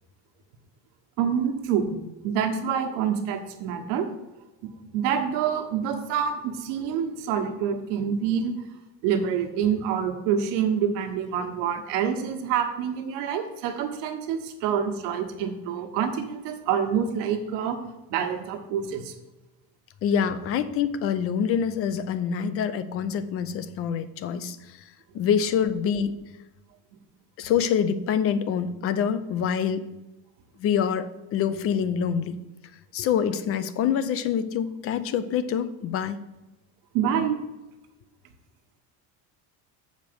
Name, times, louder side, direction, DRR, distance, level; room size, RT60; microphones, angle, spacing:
voice 1, 1.2-1.9 2.2-4.1 4.6-8.5 9.0-17.8 18.1-19.1 36.9-37.4, right 8 dB, 85° right, 4 dB, 1.4 m, -27 dB
voice 2, 20.0-24.6 25.1-26.1 27.4-29.8 30.6-32.4 32.9-36.2, left 8 dB, 35° left, 13 dB, 0.4 m, -26 dB
7.6 x 5.1 x 6.8 m, 1.0 s
cardioid pair, 170°, 41 cm